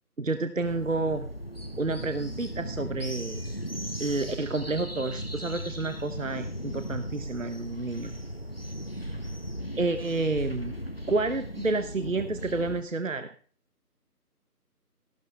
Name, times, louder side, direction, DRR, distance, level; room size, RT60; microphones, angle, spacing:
voice 1, 0.2-1.3 1.8-3.4 4.0-8.1 9.8-10.8 11.1-13.3, right 3 dB, 55° right, 9 dB, 1.0 m, -30 dB
sound 1, 0.6-12.8, equal, 35° left, 0.8 m, -37 dB
15.0 x 12.0 x 3.4 m, 0.42 s
figure-of-eight pair, 180°, 48 cm